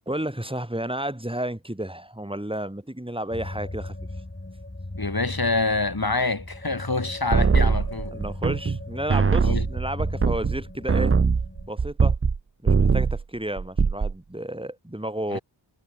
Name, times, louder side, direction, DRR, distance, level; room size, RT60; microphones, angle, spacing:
voice 1, 0.1-3.9 8.1-11.1 11.7-12.1 12.6-15.4, right 1 dB, 10° right, 5.1 m, -32 dB
sound 1, 3.3-11.7, left 2 dB, 25° left, 3.8 m, -37 dB
voice 2, 4.9-8.1 9.4-9.7 15.3-15.4, left 3 dB, 50° left, 5.9 m, -26 dB
sound 2, 7.3-8.8 9.1-12.4 12.7-13.2 13.6-14.1, right 5 dB, 30° right, 0.6 m, -21 dB
wide cardioid pair, 65°, 45 cm